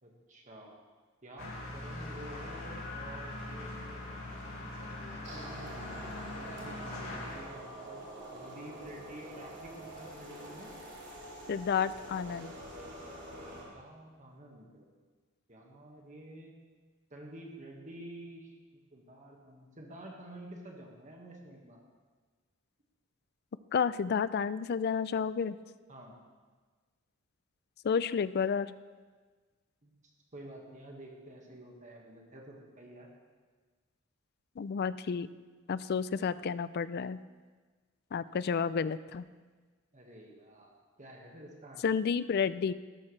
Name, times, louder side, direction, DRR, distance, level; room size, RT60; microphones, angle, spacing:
voice 1, 0.0-0.8 1.2-4.0 4.8-8.0 8.3-10.7 13.5-14.9 15.5-16.5 17.1-18.5 18.9-21.8 25.9-26.2 29.8-29.9 30.3-33.1 39.9-41.8, right 1 dB, 35° right, 0 dB, 1.6 m, -50 dB
sound 1, 1.4-7.4, left 2 dB, 65° left, 3.8 m, -41 dB
sound 2, 5.2-13.6, right 1 dB, 55° right, 3.6 m, -46 dB
voice 2, 11.5-12.5 23.7-25.6 27.8-28.7 34.6-35.3 35.7-37.2 38.1-39.2 41.8-42.7, left 6 dB, 50° left, 16 dB, 0.4 m, -31 dB
16.0 x 13.0 x 3.3 m, 1.4 s
head